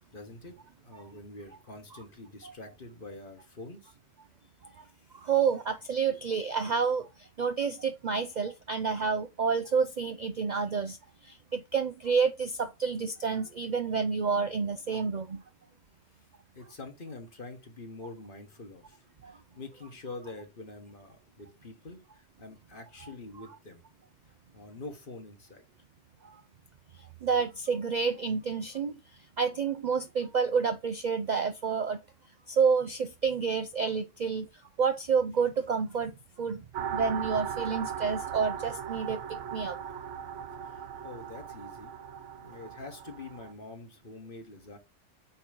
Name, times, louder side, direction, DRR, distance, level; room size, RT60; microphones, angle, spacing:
voice 1, 0.1-0.6 0.8-3.9 4.8-5.2 16.5-23.8 24.5-25.6 40.7-42.0 42.4-44.8, left 3 dB, 45° left, 1.6 m, -46 dB
voice 2, 5.1-15.4 19.2-19.4 23.0-23.1 26.2-26.4 27.0-32.0 32.5-36.1 36.4-40.0, right 5 dB, 55° right, 0.5 m, -29 dB
sound 1, 36.7-43.5, right 8 dB, 75° right, 1.1 m, -38 dB
8.6 x 3.1 x 5.1 m
omnidirectional pair, 1.3 m